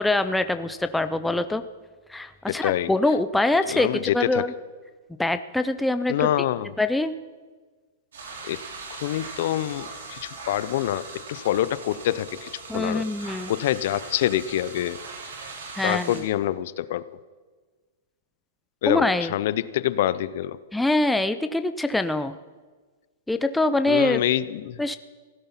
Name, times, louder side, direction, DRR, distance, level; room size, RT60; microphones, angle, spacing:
voice 1, 0.0-1.6 2.1-4.5 5.2-6.3 6.8-7.1 12.7-13.5 15.7-16.2 18.9-19.3 20.7-22.3 23.3-24.2 24.8-25.0, left 2 dB, 5° left, 9 dB, 0.4 m, -24 dB
voice 2, 2.5-2.9 3.7-4.4 6.1-6.7 8.4-15.0 15.8-17.1 18.8-20.6 23.9-24.8, left 12 dB, 55° left, 17 dB, 0.6 m, -26 dB
sound 1, 8.1-16.2, right 4 dB, 80° right, 4.1 m, -40 dB
16.0 x 13.0 x 5.7 m, 1.4 s
hypercardioid pair, 155°, 0 cm